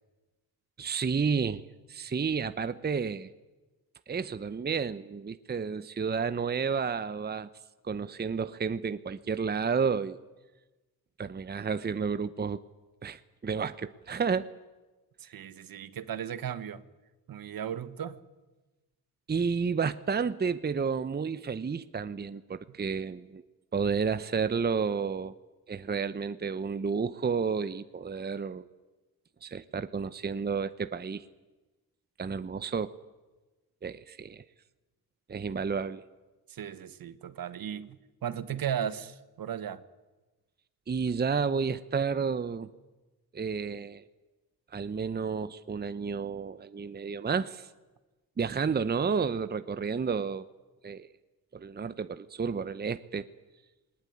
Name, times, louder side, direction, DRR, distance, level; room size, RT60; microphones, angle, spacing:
voice 1, 0.8-3.3 4.1-7.5 7.8-10.2 11.2-12.6 13.0-14.5 19.3-23.4 23.7-25.3 25.7-28.7 29.4-31.2 32.2-32.9 33.8-34.4 35.3-36.0 40.9-42.7 43.3-44.0 44.7-47.7 48.4-50.5 50.8-51.1 51.5-53.3, right 5 dB, 25° right, 0.9 m, -31 dB
voice 2, 15.2-16.8 17.3-18.2 36.5-39.8, right 9 dB, 65° right, 1.5 m, -36 dB
20.0 x 19.5 x 9.5 m
cardioid pair, 80°, 38 cm